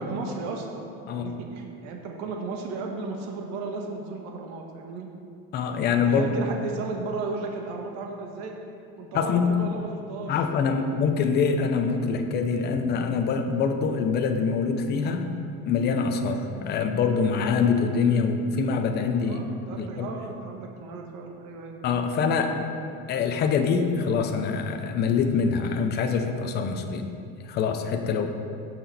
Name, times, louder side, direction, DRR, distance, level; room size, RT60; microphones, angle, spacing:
voice 1, 0.0-5.1 6.1-8.6 9.0-10.4 10.8-10.9 19.2-21.9, right 3 dB, 60° right, 2 dB, 1.4 m, -35 dB
voice 2, 5.5-6.3 9.1-9.5 10.3-15.3 15.7-19.4 19.8-20.1 21.8-22.7 23.1-27.0 27.4-28.3, left 5 dB, 30° left, 5 dB, 0.8 m, -24 dB
16.0 x 6.1 x 4.2 m, 2.5 s
cardioid pair, 160°, 31 cm